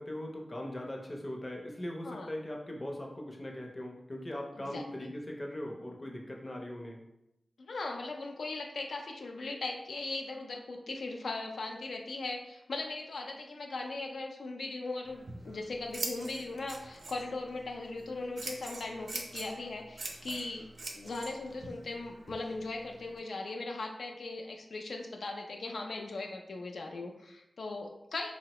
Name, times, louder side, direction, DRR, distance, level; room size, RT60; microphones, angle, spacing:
voice 1, 0.0-7.0, left 1 dB, 25° left, 0 dB, 0.5 m, -40 dB
voice 2, 4.6-5.1 7.6-20.7 20.9-28.3, left 3 dB, 90° left, 2 dB, 0.3 m, -39 dB
Scissors, 15.0-23.2, right 2 dB, 75° right, 0.4 m, -44 dB
3.6 x 2.0 x 2.9 m, 0.84 s
wide cardioid pair, 100°, 0 cm